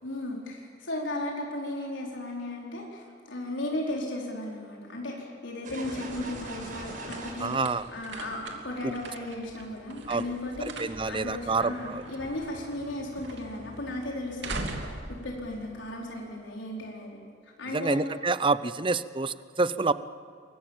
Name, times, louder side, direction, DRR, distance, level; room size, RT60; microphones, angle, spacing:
voice 1, 0.0-7.6 7.9-18.0, left 1 dB, 80° left, -1 dB, 4.6 m, -36 dB
sound 1, 5.6-8.7, right 2 dB, 45° right, 6.5 m, -40 dB
sound 2, 5.8-16.4, right 2 dB, 65° right, 3.0 m, -43 dB
voice 2, 7.4-7.8 10.1-10.2 10.6-12.0 17.7-19.9, right 3 dB, 25° right, 15 dB, 0.7 m, -27 dB
28.0 x 24.0 x 7.4 m, 2.5 s
head